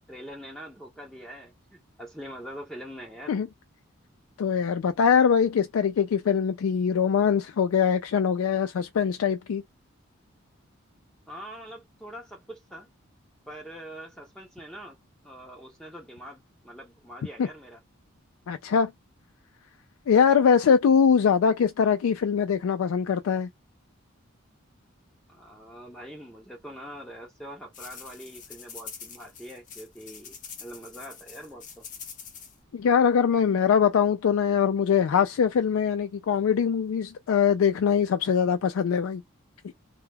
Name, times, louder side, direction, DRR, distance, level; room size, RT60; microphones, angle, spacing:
voice 1, 0.1-3.4 11.3-12.9 13.5-15.0 15.2-17.8 25.3-31.9, equal, 5° left, 0.5 m, -43 dB
voice 2, 4.4-9.6 17.4-17.5 18.5-18.9 20.1-23.5 32.7-39.2, left 7 dB, 80° left, 0.3 m, -22 dB
sound 1, 27.7-32.5, left 6 dB, 40° left, 0.7 m, -44 dB
2.2 x 2.2 x 3.3 m
head